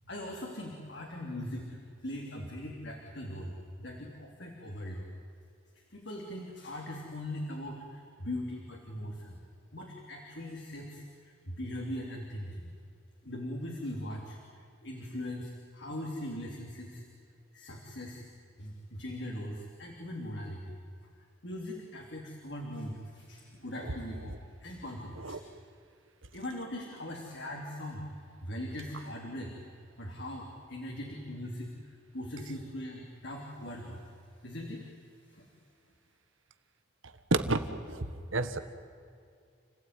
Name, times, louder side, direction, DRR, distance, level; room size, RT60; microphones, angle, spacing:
voice 1, 0.1-5.0 5.7-9.4 9.7-12.7 13.2-17.0 17.5-18.3 18.6-20.8 21.4-24.3 24.6-25.4 26.3-29.5 30.0-31.7 32.1-34.0 34.4-34.9 35.3-35.5, left 1 dB, 60° left, 0 dB, 3.2 m, -40 dB
voice 2, 37.0-38.6, right 2 dB, 90° right, 9 dB, 1.7 m, -31 dB
29.5 x 16.5 x 9.7 m, 2.4 s
head